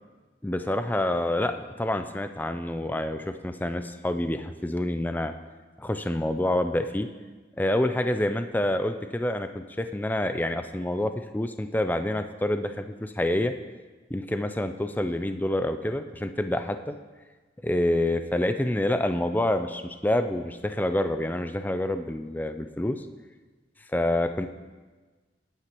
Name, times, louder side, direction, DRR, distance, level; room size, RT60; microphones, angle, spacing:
voice 1, 0.4-5.3 5.8-7.1 7.6-13.5 14.1-16.9 17.6-23.1 23.9-24.5, left 1 dB, 10° left, 8 dB, 0.4 m, -27 dB
19.0 x 8.9 x 3.0 m, 1.3 s
head